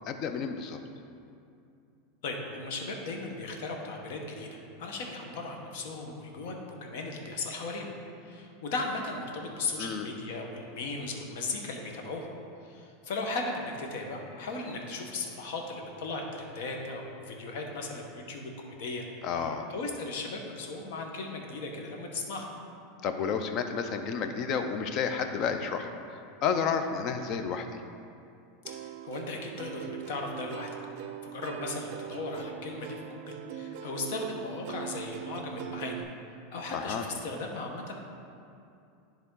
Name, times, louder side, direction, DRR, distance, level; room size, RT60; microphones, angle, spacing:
voice 1, 0.1-0.8 9.8-10.1 19.2-19.7 23.0-27.7 36.7-37.1, left 6 dB, 45° left, 7 dB, 0.6 m, -31 dB
voice 2, 2.2-7.9 8.2-12.3 12.6-19.1 19.4-22.5 28.8-30.7 31.0-36.0 36.5-37.9, left 3 dB, 70° left, 2 dB, 1.0 m, -37 dB
Plucked string instrument, 28.6-36.0, right 10 dB, 60° right, 0.4 m, -41 dB
10.5 x 3.5 x 3.8 m, 2.5 s
supercardioid pair, 120°, 0 cm